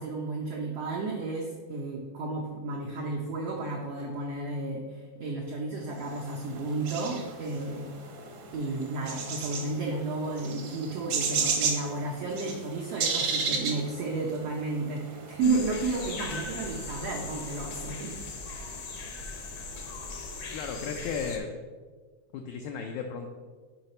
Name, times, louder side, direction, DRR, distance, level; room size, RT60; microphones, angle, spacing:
voice 1, 0.0-7.9 8.5-18.1 18.7-18.9, right 3 dB, 85° right, -1 dB, 1.4 m, -32 dB
sound 1, 6.0-17.9, right 5 dB, 70° right, 1.3 m, -35 dB
sound 2, 15.4-21.4, left 3 dB, 70° left, 1.4 m, -39 dB
voice 2, 20.5-21.5 22.3-23.3, left 5 dB, 85° left, 4 dB, 1.6 m, -34 dB
6.0 x 4.8 x 5.4 m, 1.5 s
omnidirectional pair, 3.9 m